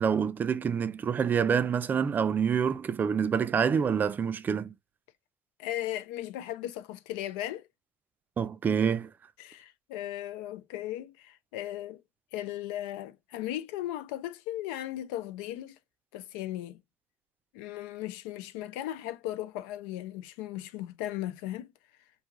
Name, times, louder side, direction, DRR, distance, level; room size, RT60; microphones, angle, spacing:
voice 1, 0.0-4.8 8.4-9.1, right 7 dB, 35° right, 0.4 m, -27 dB
voice 2, 5.6-7.6 9.4-12.0 12.3-15.8 16.1-16.8 17.5-21.7, left 13 dB, 85° left, 0.4 m, -37 dB
2.6 x 2.3 x 2.9 m
supercardioid pair, 80°, 5 cm